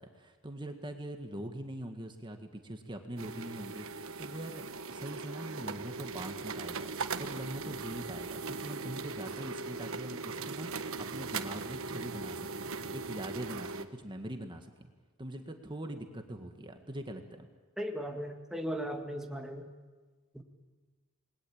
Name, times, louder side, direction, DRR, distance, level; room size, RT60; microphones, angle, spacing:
voice 1, 0.0-14.9 15.2-17.5, right 1 dB, 20° right, 5 dB, 1.7 m, -43 dB
sound 1, 3.2-13.9, right 4 dB, 65° right, 1.3 m, -39 dB
voice 2, 17.8-19.7 20.3-20.4, equal, ahead, 2 dB, 1.8 m, -37 dB
29.0 x 21.0 x 8.9 m, 1.3 s
head